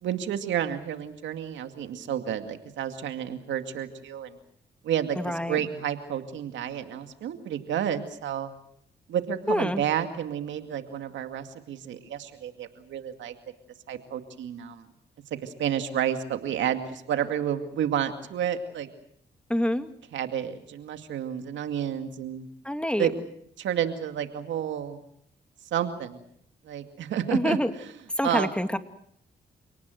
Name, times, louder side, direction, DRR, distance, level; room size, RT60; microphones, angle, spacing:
voice 1, 0.0-4.4 4.8-8.5 9.1-13.3 13.9-14.8 15.4-18.9 20.1-22.5 23.0-23.1 23.6-25.0 25.7-26.2 26.6-27.6 28.2-28.5, right 9 dB, 85° right, 7 dB, 2.3 m, -30 dB
voice 2, 5.2-5.6 9.5-9.8 19.5-19.9 22.6-23.1 27.3-27.7 28.2-28.8, equal, 5° left, 8 dB, 2.4 m, -26 dB
28.5 x 18.5 x 7.9 m, 0.70 s
supercardioid pair, 50°, 19 cm